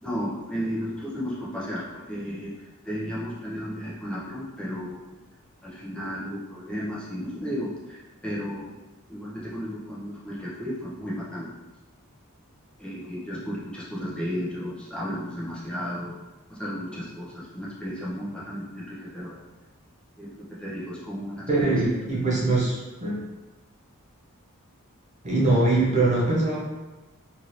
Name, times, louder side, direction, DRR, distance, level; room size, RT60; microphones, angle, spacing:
voice 1, 0.0-5.2 5.6-8.8 9.1-11.5 12.8-16.2 16.5-19.4 20.2-21.8 22.0-22.6, equal, 5° left, -8 dB, 0.7 m, -34 dB
voice 2, 21.5-23.2 25.2-26.6, right 2 dB, 35° right, -5 dB, 0.6 m, -22 dB
2.7 x 2.6 x 3.1 m, 1.1 s
head